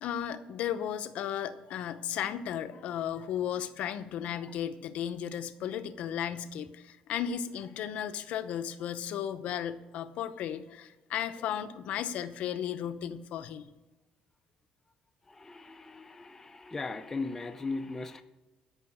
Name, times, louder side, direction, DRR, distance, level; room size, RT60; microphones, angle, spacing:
voice 1, 0.0-13.7, left 9 dB, 60° left, 0.7 m, -35 dB
voice 2, 15.2-18.2, left 3 dB, 15° left, 0.6 m, -38 dB
13.5 x 5.6 x 8.3 m
cardioid pair, 160°, 2 cm